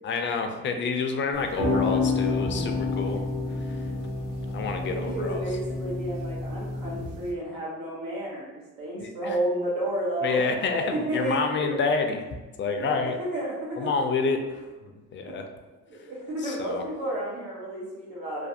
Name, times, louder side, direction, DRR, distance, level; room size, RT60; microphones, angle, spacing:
voice 1, 0.0-3.2 3.6-3.9 4.5-5.4 9.0-9.4 10.2-12.3 12.6-13.1 13.8-15.5 16.4-16.8, left 4 dB, 40° left, 5 dB, 0.4 m, -28 dB
sound 1, 1.3-7.3, left 3 dB, 60° right, 0.7 m, -29 dB
voice 2, 4.8-11.7 12.7-13.9 15.3-15.4 15.9-18.5, right 1 dB, 90° right, -5 dB, 1.0 m, -32 dB
2.4 x 2.2 x 2.6 m, 1.2 s
cardioid pair, 90°, 30 cm